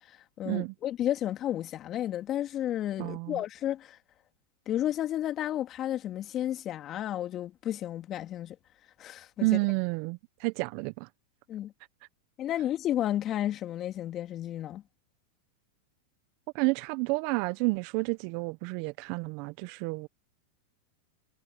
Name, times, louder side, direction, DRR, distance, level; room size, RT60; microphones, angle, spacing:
voice 1, 0.1-4.0 4.7-8.6 9.0-9.5 11.5-11.7 12.4-14.8, left 12 dB, 35° left, 3.3 m, -32 dB
voice 2, 3.0-3.4 9.4-11.1 16.5-20.1, right 27 dB, 55° right, 1.2 m, -30 dB
hypercardioid pair, 105°, 0 cm